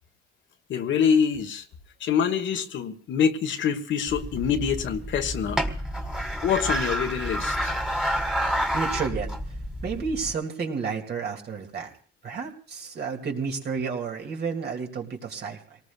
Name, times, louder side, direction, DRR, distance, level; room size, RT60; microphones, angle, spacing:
voice 1, 0.7-1.6 2.0-5.6 6.4-7.7, left 7 dB, 70° left, 7 dB, 1.3 m, -25 dB
sound 1, 4.1-10.3, equal, 5° right, 1.7 m, -29 dB
voice 2, 8.7-9.3 9.8-11.9 12.2-15.6, right 5 dB, 55° right, 2 dB, 2.4 m, -31 dB
26.5 x 19.0 x 2.3 m, 0.42 s
cardioid pair, 90°, 20 cm